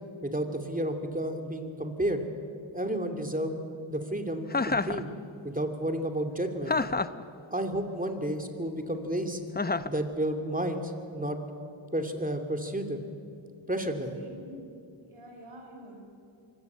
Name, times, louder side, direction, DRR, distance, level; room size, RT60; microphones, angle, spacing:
voice 1, 0.2-2.2 2.7-3.6 3.9-5.1 5.4-6.8 7.5-9.4 9.8-11.4 11.9-13.0 13.7-14.1, right 1 dB, 15° right, 5 dB, 2.7 m, -31 dB
Chuckle chortle, 4.5-5.0 6.7-7.2 9.6-10.0, left 3 dB, 20° left, 0.7 m, -28 dB
voice 2, 14.1-14.6 15.1-16.0, right 1 dB, 90° right, 2 dB, 4.3 m, -46 dB
24.5 x 16.0 x 8.1 m, 2.5 s
cardioid pair, 45°, 48 cm